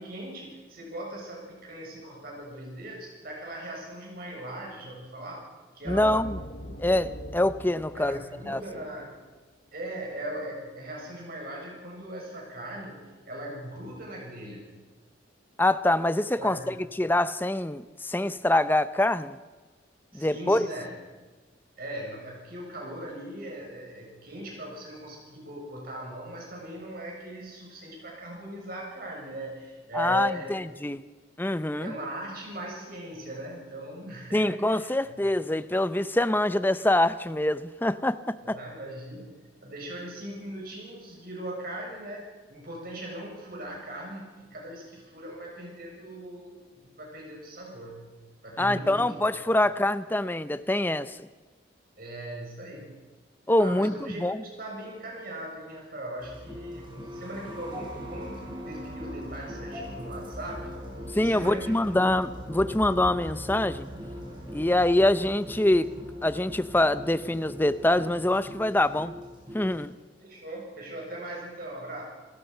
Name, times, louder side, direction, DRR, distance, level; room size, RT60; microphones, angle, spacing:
voice 1, 0.0-5.5 5.7-6.2 8.0-9.2 9.7-14.7 16.4-16.6 20.1-20.9 21.8-30.6 31.8-35.2 38.4-48.0 48.4-49.5 52.0-53.1 53.6-60.7 61.2-62.0 70.2-72.0, right 1 dB, 50° right, -1 dB, 7.2 m, -39 dB
sound 1, 5.9-9.3, equal, 55° left, 1.4 m, -42 dB
voice 2, 5.9-6.4 6.8-8.2 8.5-8.6 15.6-19.4 20.1-20.7 29.9-31.0 31.4-31.9 34.3-38.6 48.6-51.2 53.5-54.4 61.1-63.9 64.5-65.9 66.2-69.1 69.5-69.9, left 1 dB, 10° left, 13 dB, 0.6 m, -25 dB
sound 2, 56.2-69.8, equal, 25° right, 6.1 m, -40 dB
29.0 x 16.5 x 5.6 m, 1.3 s
head